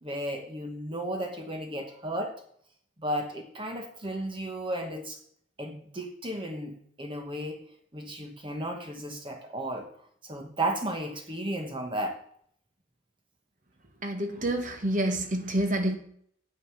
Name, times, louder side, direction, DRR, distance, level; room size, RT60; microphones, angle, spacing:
voice 1, 0.0-2.3 3.0-5.2 5.6-7.6 7.9-9.9 10.2-12.2, right 1 dB, 25° right, 3 dB, 1.2 m, -34 dB
voice 2, 14.0-16.0, right 1 dB, 40° right, 6 dB, 1.5 m, -28 dB
9.2 x 7.8 x 5.7 m, 0.63 s
head